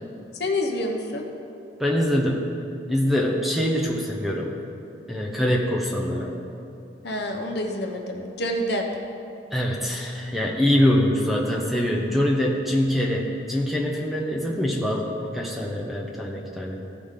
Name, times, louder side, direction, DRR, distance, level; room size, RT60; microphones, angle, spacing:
voice 1, 0.4-1.3 7.0-8.8, left 1 dB, 60° left, 3 dB, 0.8 m, -27 dB
voice 2, 1.8-2.5 2.9-4.5 5.1-6.4 9.5-16.8, equal, ahead, -2 dB, 0.7 m, -24 dB
15.0 x 5.0 x 3.7 m, 2.6 s
head